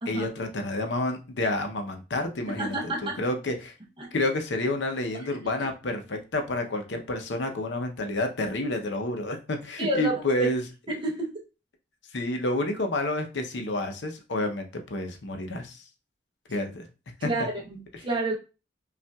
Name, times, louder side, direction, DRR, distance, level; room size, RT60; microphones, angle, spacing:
voice 1, 0.1-3.7 4.1-10.6 12.1-15.8 16.5-16.8 17.2-17.5, left 2 dB, 80° left, 5 dB, 0.7 m, -29 dB
voice 2, 2.5-3.2 4.0-4.1 5.1-5.3 9.8-10.5 10.9-11.4 17.2-18.4, right 2 dB, 30° right, -1 dB, 0.7 m, -30 dB
5.4 x 2.4 x 2.3 m, 0.31 s
head